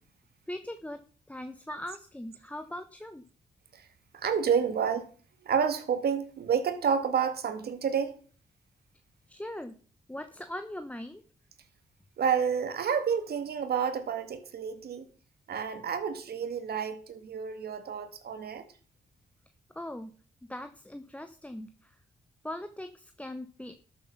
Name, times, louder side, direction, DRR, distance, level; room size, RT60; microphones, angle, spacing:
voice 1, 0.5-1.0 1.3-3.2 9.3-9.8 10.1-11.2 19.7-20.1 20.5-21.9 22.4-23.7, left 1 dB, 10° left, 1.0 m, -40 dB
voice 2, 4.1-5.1 5.5-8.2 12.2-15.0 15.5-18.6, right 7 dB, 70° right, 1.8 m, -29 dB
13.0 x 7.2 x 5.6 m
cardioid pair, 55°, 17 cm